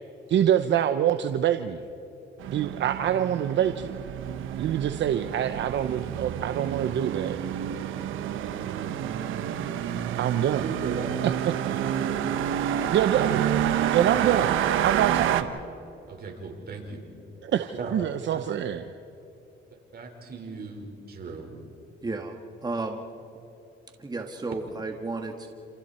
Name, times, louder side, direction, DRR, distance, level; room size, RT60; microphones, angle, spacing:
voice 1, 0.3-1.8 2.5-3.9 4.6-7.4 10.2-10.7 11.2-11.8 12.9-15.6 17.4-18.9, right 10 dB, 65° right, 9 dB, 0.8 m, -26 dB
sound 1, 2.4-15.4, right 10 dB, 85° right, 1.1 m, -29 dB
voice 2, 10.5-11.1 11.4-12.3 16.1-17.0 17.8-17.9 18.3-18.4 19.9-21.6, right 4 dB, 50° right, 2 dB, 4.7 m, -37 dB
voice 3, 22.0-23.0 24.0-25.5, right 3 dB, 20° right, 3 dB, 1.8 m, -33 dB
28.5 x 27.5 x 4.4 m, 3.0 s
cardioid pair, 90°, 20 cm